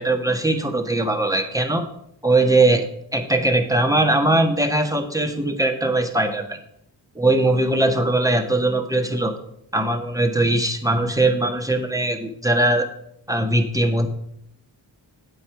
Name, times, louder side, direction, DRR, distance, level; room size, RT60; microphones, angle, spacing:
voice 1, 0.0-1.8 2.2-2.8 3.1-6.6 7.1-9.3 9.7-12.9 13.3-14.1, right 2 dB, 5° right, 5 dB, 1.5 m, -20 dB
8.6 x 7.4 x 4.7 m, 0.70 s
cardioid pair, 45°, 46 cm